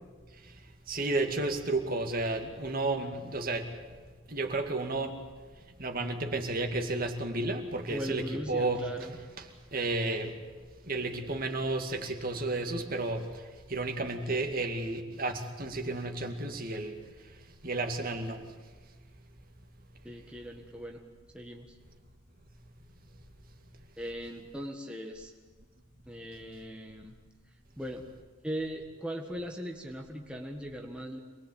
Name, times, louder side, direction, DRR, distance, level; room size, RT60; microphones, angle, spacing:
voice 1, 0.9-3.7 4.3-5.1 5.8-8.8 9.7-10.3 10.9-13.3 13.7-17.0 17.6-18.4, right 2 dB, 45° right, 4 dB, 2.4 m, -32 dB
voice 2, 7.9-9.1 20.0-21.0 21.3-21.8 24.0-25.3 26.1-27.1 27.8-28.0 28.4-31.2, equal, 5° right, 1 dB, 1.7 m, -39 dB
26.5 x 21.0 x 8.9 m, 1.4 s
head